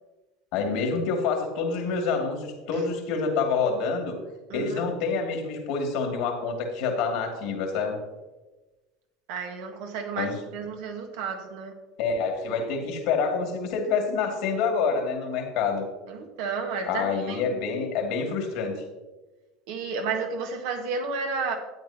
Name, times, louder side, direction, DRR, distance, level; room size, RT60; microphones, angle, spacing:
voice 1, 0.5-4.2 4.5-8.0 10.2-10.3 12.0-15.9 16.9-18.8, left 5 dB, 70° left, 2 dB, 2.4 m, -27 dB
voice 2, 4.5-4.9 9.3-11.7 16.1-17.4 19.7-21.5, right 5 dB, 75° right, 4 dB, 1.6 m, -32 dB
12.0 x 9.1 x 2.9 m, 1.1 s
hypercardioid pair, 90°, 0 cm